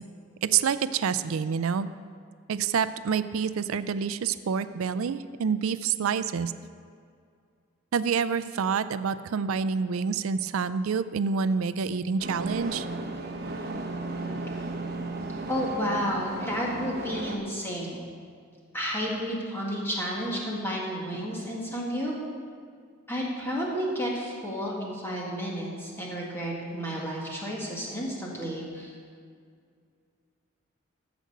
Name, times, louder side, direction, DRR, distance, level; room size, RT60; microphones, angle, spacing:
voice 1, 0.4-1.9 2.5-6.5 7.9-12.9, right 6 dB, 90° right, 14 dB, 0.4 m, -27 dB
sound 1, 12.2-17.4, right 2 dB, 50° right, 0.9 m, -35 dB
voice 2, 15.5-18.0 18.7-22.1 23.1-28.9, equal, 10° left, -4 dB, 1.8 m, -31 dB
14.5 x 5.2 x 6.5 m, 2.2 s
head